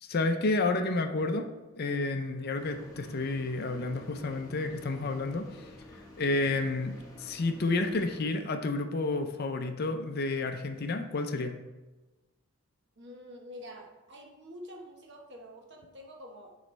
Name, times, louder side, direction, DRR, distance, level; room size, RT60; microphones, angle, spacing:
voice 1, 0.0-1.5 1.8-5.6 5.9-11.6, left 3 dB, 45° left, 6 dB, 0.5 m, -30 dB
sound 1, 2.6-8.2, left 1 dB, 15° left, 1.1 m, -50 dB
voice 2, 13.0-16.6, equal, 50° right, 1 dB, 1.0 m, -47 dB
7.5 x 3.1 x 5.2 m, 1.1 s
head